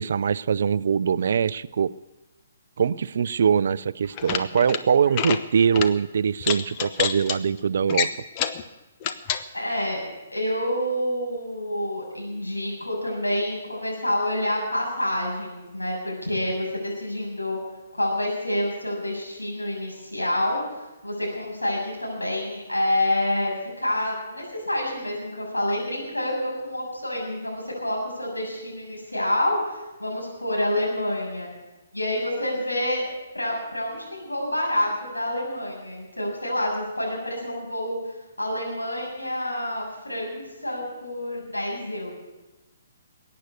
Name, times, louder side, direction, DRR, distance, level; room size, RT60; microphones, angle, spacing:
voice 1, 0.0-1.9 2.8-8.1, right 7 dB, 55° right, 17 dB, 0.5 m, -22 dB
sound 1, 4.0-4.8 5.1-5.4 5.7-5.9 6.4-7.4 7.9-8.6 9.0-9.4, left 8 dB, 30° left, 0.9 m, -27 dB
voice 2, 9.5-10.0 10.3-17.6 17.9-20.6 21.0-31.5 31.9-33.1 33.3-42.1, left 1 dB, 90° left, -2 dB, 7.2 m, -28 dB
21.5 x 9.4 x 6.8 m, 1.1 s
figure-of-eight pair, 130°, 0 cm